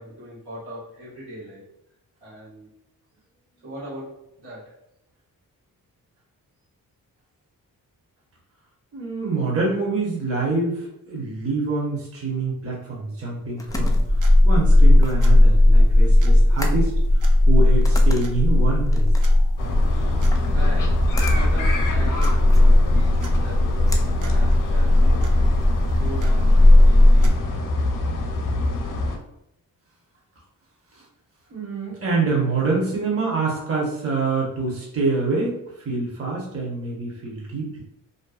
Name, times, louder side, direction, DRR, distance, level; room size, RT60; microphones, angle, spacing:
voice 1, 0.0-1.6 2.2-2.7 3.6-4.7 20.4-25.4 25.9-27.6, equal, 85° right, -8 dB, 1.4 m, -39 dB
voice 2, 8.9-16.9 17.2-19.5 30.9-31.0 31.5-37.8, right 3 dB, 35° right, -3 dB, 0.9 m, -26 dB
sound 1, 13.3-25.1, left 2 dB, 10° left, 0.4 m, -40 dB
sound 2, 13.7-27.3, left 1 dB, 55° right, 0.5 m, -16 dB
sound 3, 19.6-29.2, left 2 dB, 55° left, 0.6 m, -26 dB
2.5 x 2.2 x 2.3 m, 0.81 s
cardioid pair, 55°, 38 cm